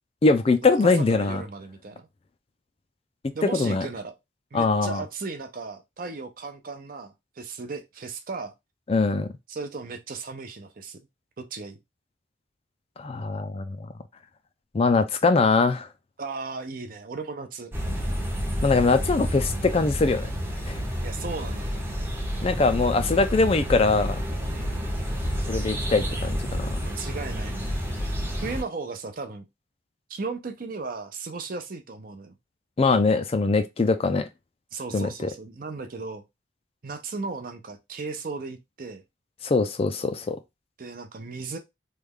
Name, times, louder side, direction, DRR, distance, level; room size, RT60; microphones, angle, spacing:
voice 1, 0.2-1.4 3.5-3.9 4.5-5.0 8.9-9.3 13.0-13.9 14.7-15.9 18.6-20.3 20.7-20.8 22.4-24.2 25.5-26.8 32.8-34.3 34.9-35.3 39.4-40.4, left 3 dB, 30° left, 0.3 m, -22 dB
voice 2, 0.8-2.1 3.3-4.1 4.5-8.5 9.5-11.0 11.4-11.8 16.2-17.7 21.0-21.7 24.5-24.9 26.8-27.8 28.4-29.5 30.1-32.3 34.7-36.2 36.8-39.0 40.8-41.6, right 4 dB, 50° right, 0.6 m, -36 dB
sound 1, 17.7-28.6, equal, 10° right, 0.7 m, -29 dB
3.2 x 2.3 x 3.5 m
head